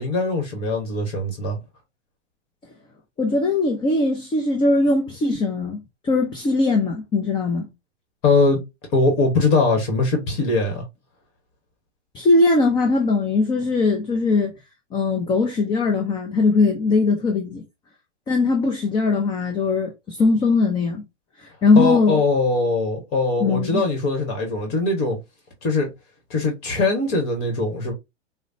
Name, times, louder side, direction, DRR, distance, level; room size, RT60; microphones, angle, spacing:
voice 1, 0.0-1.6 8.2-8.6 8.9-10.8 21.8-25.2 25.6-25.9 26.3-27.9, left 3 dB, 35° left, 1.3 m, -21 dB
voice 2, 3.2-5.8 6.0-7.7 12.1-14.5 14.9-17.6 18.3-21.0 21.4-22.2 23.4-23.8, left 3 dB, 15° left, 0.5 m, -20 dB
4.9 x 2.1 x 2.6 m
hypercardioid pair, 120°, 36 cm